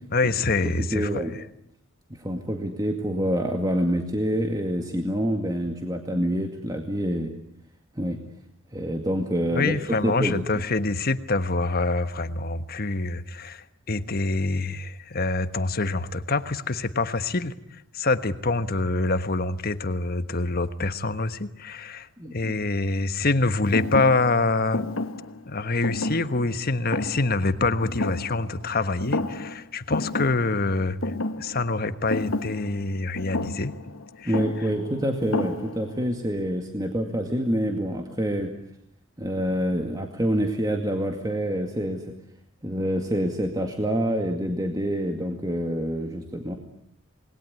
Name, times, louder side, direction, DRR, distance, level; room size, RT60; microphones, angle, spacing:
voice 1, 0.1-1.2 9.5-24.8 25.5-33.7 34.2-34.3, left 3 dB, 50° left, 11 dB, 1.3 m, -26 dB
voice 2, 0.6-1.3 2.1-7.3 8.0-8.2 8.7-9.8 10.0-10.4 22.2-22.5 34.3-38.5 39.2-42.0 42.6-46.5, equal, 20° right, 3 dB, 2.2 m, -27 dB
Thump thud, 23.7-28.7 29.0-29.6 29.9-36.0, left 2 dB, 90° left, 1.3 m, -31 dB
28.0 x 20.5 x 9.6 m, 0.74 s
head